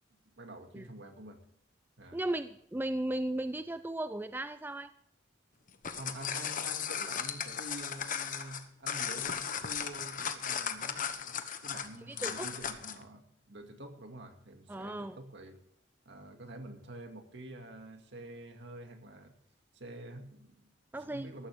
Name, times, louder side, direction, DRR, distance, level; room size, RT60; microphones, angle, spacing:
voice 1, 0.4-1.4 2.0-2.2 5.9-15.6 16.1-19.4 19.7-21.5, right 1 dB, 60° right, 4 dB, 2.2 m, -47 dB
voice 2, 2.1-4.9 12.0-12.5 14.7-15.2 20.9-21.3, right 1 dB, 10° right, 11 dB, 0.4 m, -36 dB
sound 1, 5.7-13.0, left 7 dB, 45° left, 1.1 m, -36 dB
14.0 x 13.5 x 3.6 m, 0.71 s
head